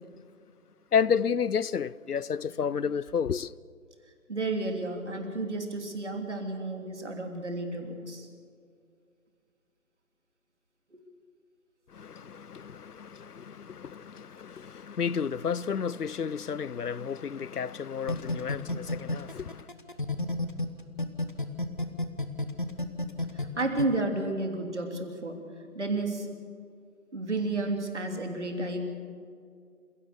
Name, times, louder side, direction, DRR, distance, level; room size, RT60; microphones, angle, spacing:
voice 1, 0.9-3.5 11.9-19.7, left 7 dB, 85° left, 0.7 m, -31 dB
voice 2, 4.3-8.3 10.9-11.0 23.3-25.4 25.7-26.3 27.1-28.8, right 2 dB, 50° right, 3.3 m, -32 dB
sound 1, 18.1-20.7 21.0-23.8, left 2 dB, 35° left, 1.1 m, -30 dB
27.5 x 17.0 x 6.9 m
figure-of-eight pair, 175°, 45 cm